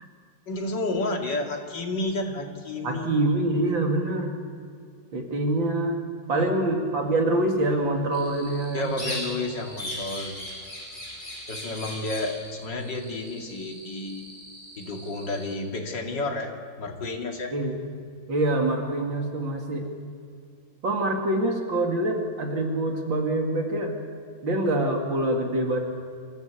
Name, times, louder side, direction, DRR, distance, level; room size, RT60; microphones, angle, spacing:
voice 1, 0.5-3.1 6.3-6.5 8.7-10.3 11.5-14.3 14.8-17.5, left 2 dB, 60° left, 1 dB, 3.0 m, -31 dB
voice 2, 2.8-4.3 5.1-6.0 6.3-8.9 17.5-17.8 18.3-19.8 20.8-23.9 24.4-25.8, right 1 dB, 70° right, 2 dB, 3.1 m, -25 dB
sound 1, 8.1-15.5, equal, 40° right, 6.6 m, -47 dB
sound 2, 9.0-9.5 9.8-12.3, left 1 dB, 15° left, 7.1 m, -36 dB
26.0 x 14.5 x 8.3 m, 2.3 s
omnidirectional pair, 2.2 m